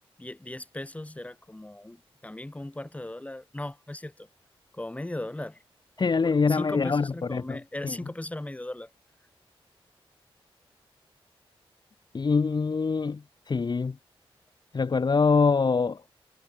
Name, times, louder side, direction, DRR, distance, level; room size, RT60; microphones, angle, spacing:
voice 1, 0.2-4.3 4.7-5.6 6.2-8.9, left 1 dB, 15° left, 5.0 m, -38 dB
voice 2, 6.0-7.6 7.8-8.0 12.1-13.2 13.5-14.0 14.7-16.0, left 4 dB, 45° left, 2.6 m, -24 dB
wide cardioid pair, 100°, 10 cm